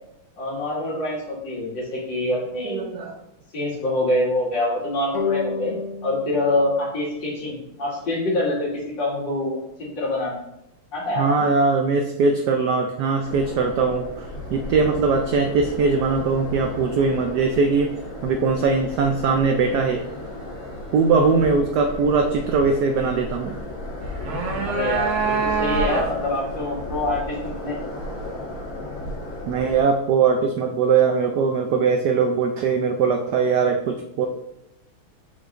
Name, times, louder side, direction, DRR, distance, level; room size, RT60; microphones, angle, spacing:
voice 1, 0.4-2.8 3.5-10.4 10.9-11.2 24.6-27.8, left 1 dB, 60° left, -5 dB, 2.6 m, -25 dB
voice 2, 2.6-3.2 11.2-20.1 20.9-23.6 29.5-34.3, right 4 dB, 85° right, 4 dB, 0.9 m, -21 dB
sound 1, 5.1-8.4, left 4 dB, 75° left, 2.0 m, -32 dB
sound 2, 13.2-29.8, left 1 dB, 40° left, 1.9 m, -34 dB
sound 3, 24.0-26.3, right 4 dB, 50° right, 0.9 m, -25 dB
7.0 x 5.8 x 2.5 m, 0.84 s
omnidirectional pair, 2.4 m